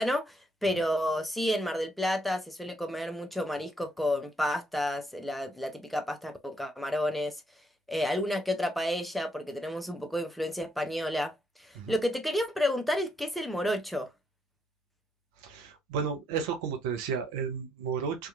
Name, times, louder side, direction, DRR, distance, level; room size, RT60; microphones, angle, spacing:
voice 1, 0.0-7.4 7.9-11.3 11.6-14.1, left 1 dB, 5° left, 0.6 m, -31 dB
voice 2, 15.4-18.3, right 6 dB, 60° right, 0.6 m, -33 dB
2.8 x 2.3 x 2.3 m
figure-of-eight pair, 65°, 2 cm